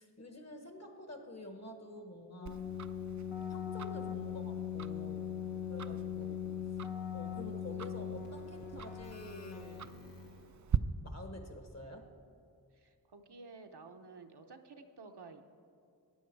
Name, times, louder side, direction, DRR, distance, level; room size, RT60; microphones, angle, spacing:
voice 1, 0.0-2.7 3.5-5.3 5.7-6.4 7.1-9.9 11.0-12.1, left 2 dB, 40° left, 5 dB, 1.4 m, -48 dB
Keyboard (musical), 2.4-10.5, left 8 dB, 80° left, 1.1 m, -40 dB
Tick-tock, 2.5-10.8, right 8 dB, 45° right, 0.4 m, -43 dB
voice 2, 12.7-15.4, right 4 dB, 70° right, 5 dB, 0.9 m, -52 dB
13.5 x 9.4 x 4.6 m, 2.4 s
wide cardioid pair, 45°, 42 cm